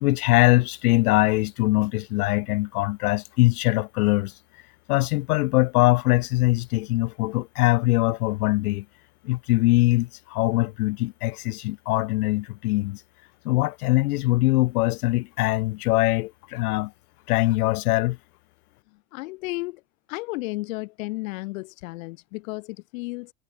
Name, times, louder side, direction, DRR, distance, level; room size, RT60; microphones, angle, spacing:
voice 1, 0.0-4.3 4.9-8.8 9.2-13.0 13.4-16.9 17.3-18.2, left 20 dB, 85° left, 1.2 m, -22 dB
voice 2, 19.1-19.8 20.1-23.3, left 23 dB, 65° left, 2.9 m, -33 dB
supercardioid pair, 165°, 44 cm